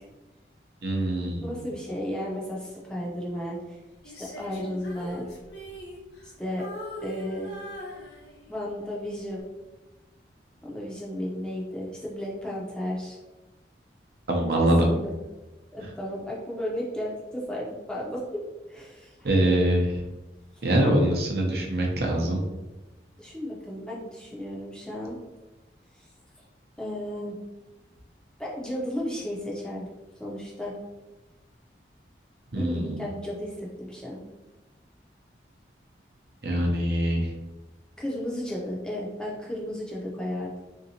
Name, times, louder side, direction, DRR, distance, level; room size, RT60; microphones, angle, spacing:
voice 1, 0.8-1.6 14.3-14.9 19.2-19.9 20.6-22.4 32.5-33.0 36.4-37.3, right 1 dB, 60° right, 0 dB, 0.6 m, -23 dB
voice 2, 1.4-3.8 4.0-5.3 6.2-6.6 7.0-7.5 8.5-9.5 10.6-13.2 14.5-15.2 15.7-18.2 18.7-19.3 20.5-20.7 23.2-25.2 25.9-26.0 26.8-27.3 28.4-29.9 30.2-30.8 32.5-34.2 38.0-40.6, left 1 dB, 5° left, -5 dB, 0.6 m, -34 dB
Female singing, 4.0-6.3 6.6-8.6 9.2-9.4, equal, 65° left, 0.9 m, -40 dB
3.7 x 2.8 x 2.7 m, 1.1 s
head